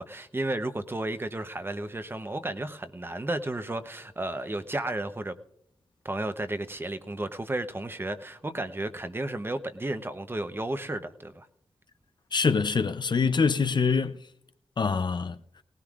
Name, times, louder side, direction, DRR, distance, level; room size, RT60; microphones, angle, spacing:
voice 1, 0.0-5.3 6.0-11.5, right 1 dB, 25° right, 0.8 m, -33 dB
voice 2, 12.3-14.2 14.8-15.4, left 5 dB, 50° left, 0.6 m, -24 dB
19.0 x 18.0 x 2.4 m
wide cardioid pair, 100°, 10 cm